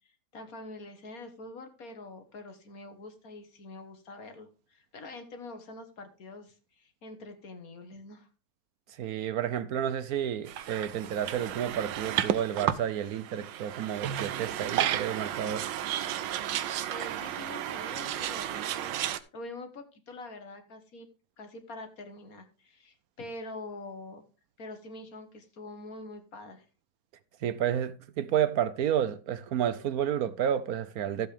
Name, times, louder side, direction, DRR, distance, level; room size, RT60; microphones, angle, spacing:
voice 1, 0.3-8.3 16.5-18.9 19.3-21.1 21.4-24.2 24.6-26.6, left 2 dB, 55° left, 1.8 m, -45 dB
voice 2, 9.0-15.7 27.4-31.3, right 9 dB, 65° right, 1.0 m, -30 dB
sound 1, 10.5-19.2, right 11 dB, 85° right, 1.4 m, -33 dB
13.0 x 7.8 x 3.4 m
omnidirectional pair, 2.0 m